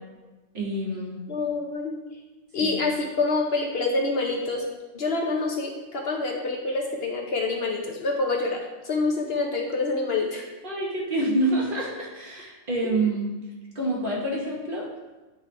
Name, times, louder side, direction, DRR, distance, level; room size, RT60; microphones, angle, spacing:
voice 1, 0.5-1.1 2.6-2.8 10.6-13.3 13.7-14.9, right 1 dB, 45° right, -3 dB, 1.4 m, -27 dB
voice 2, 1.3-1.9 2.5-4.7 4.9-10.5 12.8-13.1, left 3 dB, 55° left, 0 dB, 0.8 m, -27 dB
9.3 x 3.6 x 3.2 m, 1.2 s
omnidirectional pair, 1.3 m